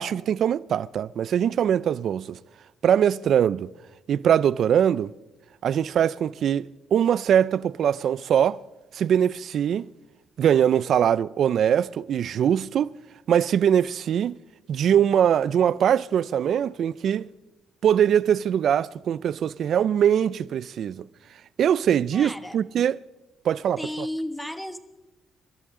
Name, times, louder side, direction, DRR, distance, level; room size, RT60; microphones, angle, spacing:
voice 1, 0.0-2.4 2.8-3.7 4.1-5.1 5.6-8.6 8.9-9.9 10.4-12.9 13.3-14.4 14.7-17.3 17.8-21.1 21.6-23.0 23.4-23.8, right 9 dB, 65° right, 0.4 m, -22 dB
voice 2, 22.1-22.6 23.8-24.8, left 1 dB, 5° left, 1.3 m, -33 dB
27.0 x 13.0 x 3.7 m
cardioid pair, 90°, 0 cm